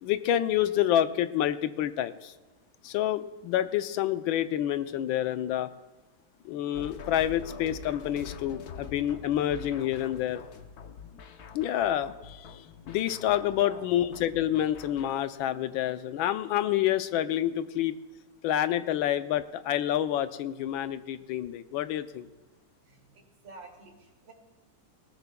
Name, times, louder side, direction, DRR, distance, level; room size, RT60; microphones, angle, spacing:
voice 1, 0.0-2.3 2.8-5.7 6.4-10.4 11.5-18.0 18.4-22.3, left 11 dB, 75° left, 11 dB, 1.4 m, -28 dB
sound 1, 6.7-15.3, left 6 dB, 60° left, 1.1 m, -45 dB
voice 2, 22.8-24.3, right 3 dB, 60° right, 0 dB, 3.2 m, -48 dB
20.0 x 17.5 x 2.3 m, 1.2 s
omnidirectional pair, 2.3 m